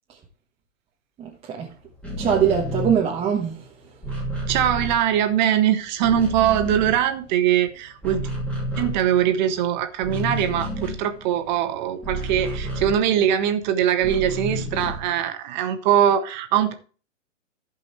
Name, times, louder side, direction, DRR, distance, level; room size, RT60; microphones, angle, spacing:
voice 1, 1.2-1.7 2.2-3.6, right 8 dB, 15° right, 1.2 m, -22 dB
sound 1, 1.9-5.6 5.9-7.6 7.9-13.5 14.0-15.2, right 1 dB, 5° left, 2.5 m, -31 dB
voice 2, 4.5-8.2 8.8-16.7, right 10 dB, 35° right, 1.4 m, -22 dB
15.5 x 5.5 x 3.1 m
hypercardioid pair, 145°, 38 cm